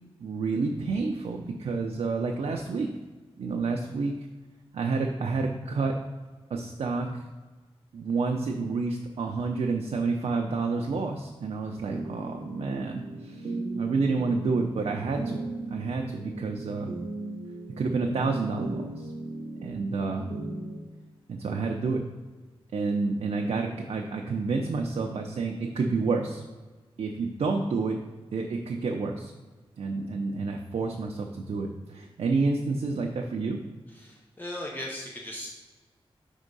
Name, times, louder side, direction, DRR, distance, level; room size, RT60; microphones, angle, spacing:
voice 1, 0.2-2.9 3.4-4.1 4.7-6.0 6.5-7.2 7.9-15.4 15.7-16.9 17.8-19.1 19.6-20.3 21.3-22.0 22.7-26.4 27.0-28.0 28.3-29.3 29.8-33.6, right 4 dB, 85° right, 2 dB, 0.5 m, -29 dB
sound 1, 11.9-20.8, right 2 dB, 60° right, 0.8 m, -38 dB
voice 2, 34.0-35.5, left 1 dB, 20° left, -2 dB, 0.7 m, -37 dB
5.3 x 3.6 x 5.2 m, 1.3 s
wide cardioid pair, 175°, 10 cm